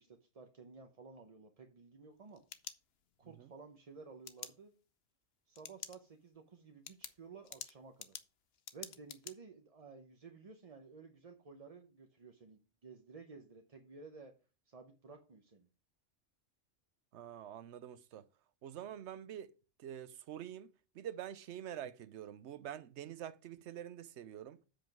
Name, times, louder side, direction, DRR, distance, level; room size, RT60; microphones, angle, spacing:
voice 1, 0.0-2.4 3.2-4.7 5.5-8.2 8.7-14.3 14.7-15.7, right 5 dB, 35° right, 0.8 m, -54 dB
sound 1, 2.1-3.3 4.3-4.5 5.6-6.0 6.4-6.5 6.9-9.3, left 8 dB, 60° left, 0.9 m, -48 dB
voice 2, 17.1-18.3 18.6-19.5 19.8-24.6, right 10 dB, 70° right, 0.9 m, -46 dB
7.9 x 5.1 x 5.9 m
omnidirectional pair, 1.3 m